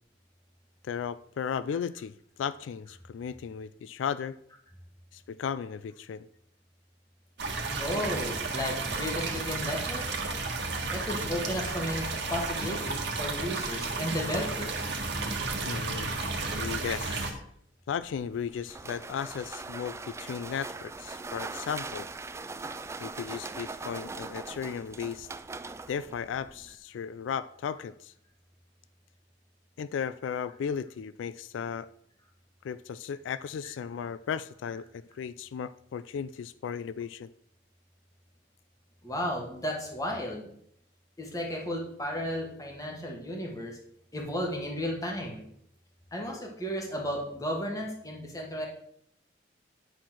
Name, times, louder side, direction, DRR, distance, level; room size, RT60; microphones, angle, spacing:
voice 1, 0.8-2.1 2.4-4.4 5.1-6.3 15.6-16.3 16.6-17.4 17.9-22.1 23.0-25.3 25.9-28.1 29.8-31.9 32.6-37.3, left 7 dB, 90° left, 16 dB, 0.3 m, -35 dB
sound 1, 7.4-17.3, right 3 dB, 65° right, 1.5 m, -32 dB
voice 2, 7.8-10.1 10.9-14.9 39.0-40.5 41.2-43.8 44.1-45.5 46.1-48.7, equal, 20° left, -1 dB, 1.8 m, -34 dB
sound 2, 18.0-26.8, right 3 dB, 15° right, 0.3 m, -41 dB
9.8 x 4.3 x 6.1 m, 0.70 s
head